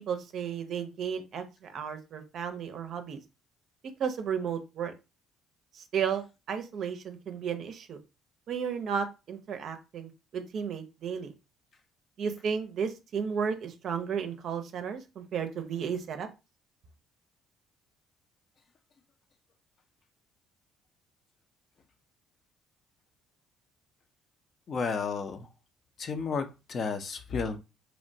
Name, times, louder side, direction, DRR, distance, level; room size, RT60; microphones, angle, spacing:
voice 1, 0.1-3.2 4.0-4.9 5.7-8.0 8.5-11.3 12.2-16.3, right 7 dB, 60° right, 8 dB, 0.5 m, -33 dB
voice 2, 24.7-25.5 26.0-27.6, left 5 dB, 50° left, 7 dB, 0.5 m, -32 dB
3.0 x 2.1 x 2.6 m, 0.28 s
hypercardioid pair, 60°, 0 cm